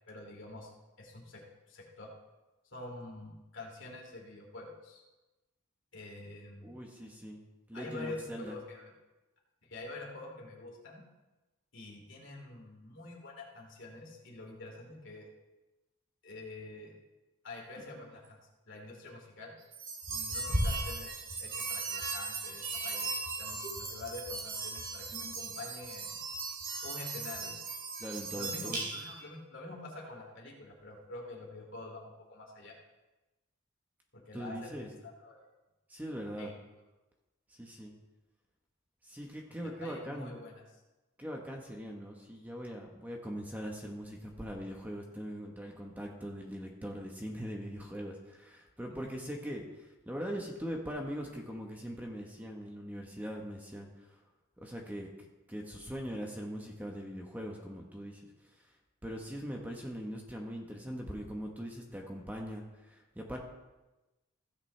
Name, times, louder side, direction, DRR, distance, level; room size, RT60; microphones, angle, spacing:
voice 1, 0.1-0.7 1.0-1.4 1.7-2.1 2.7-5.0 5.9-6.7 7.7-8.9 9.6-11.0 11.7-15.3 16.2-16.9 17.4-18.4 18.7-19.5 20.1-25.1 25.3-26.2 26.8-27.6 28.3-32.8 34.1-35.5 36.4-36.6 39.6-40.6 48.9-49.0, left 2 dB, 55° left, 0 dB, 2.7 m, -46 dB
voice 2, 6.6-7.4 7.7-8.5 28.0-28.8 34.3-34.9 35.9-36.5 37.5-37.9 39.0-40.4 41.2-54.2 54.6-58.6 59.0-63.4, equal, 10° right, 0 dB, 1.1 m, -41 dB
sound 1, 19.7-29.2, right 3 dB, 40° right, 2.9 m, -37 dB
15.5 x 8.4 x 3.3 m, 1.1 s
head